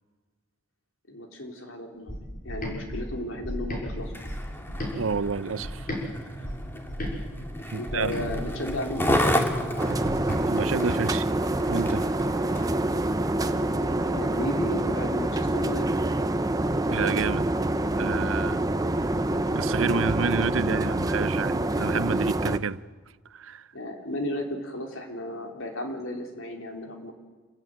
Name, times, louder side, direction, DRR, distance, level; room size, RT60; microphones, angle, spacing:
voice 1, 1.1-2.2 2.4-4.1 7.7-9.4 13.4-15.9 23.7-27.1, left 1 dB, 75° left, 3.9 m, -34 dB
sound 1, 2.1-6.0 6.4-10.4, equal, 45° left, 5.7 m, -35 dB
Skateboard, 4.0-12.8 13.5-13.6, equal, 10° left, 2.0 m, -31 dB
voice 2, 5.0-5.9 7.2-7.3 7.7-8.3 10.5-11.3 11.7-12.1 16.9-17.5 17.9-18.6 19.5-22.8 23.3-23.7, right 5 dB, 80° right, 0.6 m, -29 dB
sound 2, 9.8-22.6, right 1 dB, 20° right, 0.8 m, -26 dB
27.5 x 15.5 x 9.1 m
head